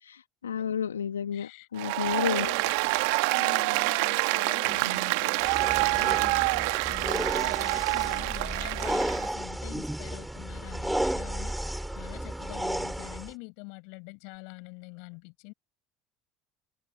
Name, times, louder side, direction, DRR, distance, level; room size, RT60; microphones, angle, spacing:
voice 1, 0.1-2.5, left 8 dB, 85° left, 1.1 m, -31 dB
voice 2, 1.3-2.8 3.3-11.6 11.9-15.5, left 37 dB, 65° left, 7.8 m, -45 dB
Applause, 1.8-9.3, right 28 dB, 65° right, 1.6 m, -27 dB
sound 1, 5.4-13.3, right 1 dB, 5° right, 3.8 m, -33 dB
hypercardioid pair, 70°, 0 cm